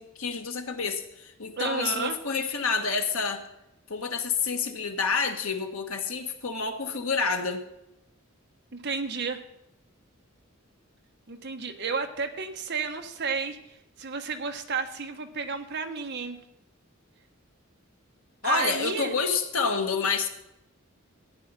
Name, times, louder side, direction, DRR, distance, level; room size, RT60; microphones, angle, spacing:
voice 1, 0.0-3.4 3.9-7.6 18.4-20.3, left 5 dB, 85° left, 4 dB, 1.5 m, -28 dB
voice 2, 1.6-2.2 8.7-9.4 11.3-16.4 18.4-19.1, right 5 dB, 55° right, 5 dB, 1.2 m, -32 dB
14.0 x 9.3 x 4.1 m, 0.88 s
head